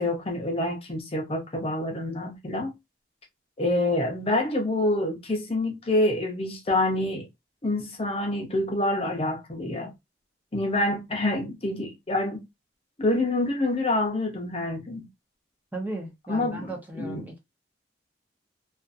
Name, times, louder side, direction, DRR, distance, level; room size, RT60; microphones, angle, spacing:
voice 1, 0.0-2.7 3.6-7.3 7.6-9.9 10.5-12.5 13.0-15.1 16.3-16.7 16.9-17.3, left 1 dB, 30° left, 0.6 m, -27 dB
voice 2, 15.7-17.4, right 1 dB, 10° right, 0.6 m, -36 dB
2.5 x 2.4 x 2.4 m
head